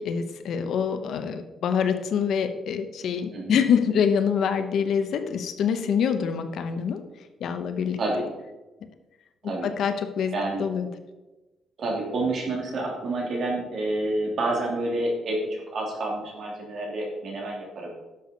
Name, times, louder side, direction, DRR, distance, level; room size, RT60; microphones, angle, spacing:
voice 1, 0.0-7.0 7.4-8.0 9.6-10.3 10.6-10.9, left 7 dB, 55° left, 9 dB, 0.9 m, -25 dB
voice 2, 10.3-10.7 11.8-15.4 15.7-17.9, right 2 dB, 45° right, -1 dB, 3.0 m, -28 dB
11.0 x 7.0 x 5.2 m, 1.1 s
cardioid pair, 170°, 0 cm